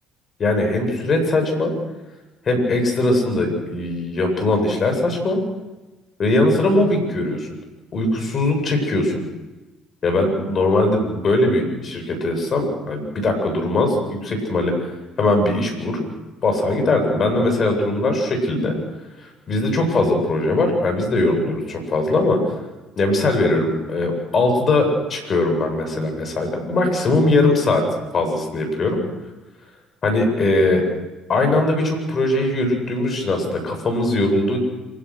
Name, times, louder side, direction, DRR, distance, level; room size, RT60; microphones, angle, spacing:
voice 1, 0.4-1.7 2.5-5.4 6.2-7.5 7.9-9.2 10.0-14.9 15.2-16.1 16.4-18.7 19.2-22.4 23.0-27.8 28.1-29.0 30.0-30.8 31.3-34.6, left 2 dB, 45° left, 4 dB, 8.0 m, -20 dB
27.0 x 17.0 x 6.6 m, 1.1 s
hypercardioid pair, 55°, 0 cm